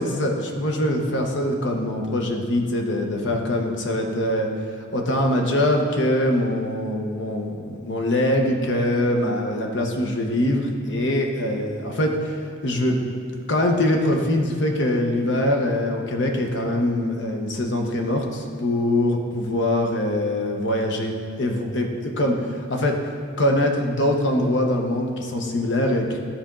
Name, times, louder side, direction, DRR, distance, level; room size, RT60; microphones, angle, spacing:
voice 1, 0.0-4.5 4.9-12.3 12.6-12.9 13.5-23.0 23.4-26.2, left 1 dB, 65° left, 2 dB, 1.0 m, -23 dB
13.0 x 4.4 x 3.8 m, 2.3 s
head